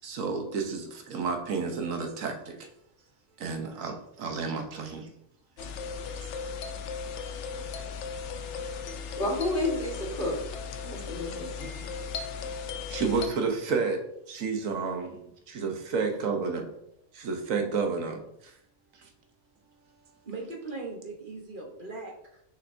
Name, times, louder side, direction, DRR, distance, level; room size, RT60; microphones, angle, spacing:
voice 1, 0.0-2.7 3.4-5.1 12.9-14.0 14.3-16.6 17.2-18.5 18.9-19.1, right 5 dB, 85° right, 4 dB, 1.3 m, -31 dB
sound 1, 5.6-13.3, left 5 dB, 70° left, 0.9 m, -37 dB
voice 2, 9.2-10.4 10.8-11.7, left 1 dB, 45° left, -2 dB, 1.7 m, -30 dB
voice 3, 20.2-22.4, right 3 dB, 45° right, 1 dB, 1.2 m, -39 dB
6.6 x 5.7 x 2.6 m, 0.78 s
omnidirectional pair, 1.3 m